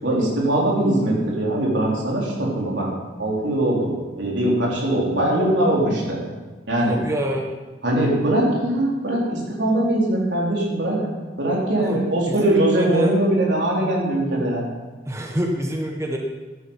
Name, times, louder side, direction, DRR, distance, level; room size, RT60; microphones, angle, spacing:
voice 1, 0.0-2.9 3.2-6.2 6.7-7.0 7.8-11.0 11.4-14.7, right 1 dB, 85° right, -3 dB, 3.9 m, -21 dB
voice 2, 6.9-7.5 11.8-12.0 12.3-13.2 15.1-16.2, equal, 15° right, 1 dB, 1.1 m, -26 dB
12.5 x 9.3 x 5.6 m, 1.2 s
head